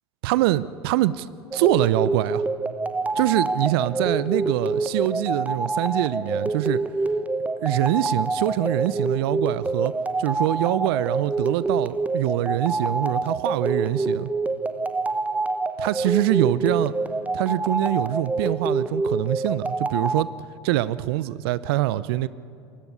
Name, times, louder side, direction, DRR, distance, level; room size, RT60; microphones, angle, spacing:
voice 1, 0.2-1.3 1.5-2.4 3.1-6.8 7.6-9.9 10.2-14.3 15.8-16.9 17.3-20.3 20.6-22.3, right 15 dB, 65° right, 18 dB, 0.6 m, -24 dB
sound 1, 1.5-20.2, right 3 dB, 10° right, 0.9 m, -26 dB
22.0 x 17.5 x 9.8 m, 2.5 s
figure-of-eight pair, 75°, 14 cm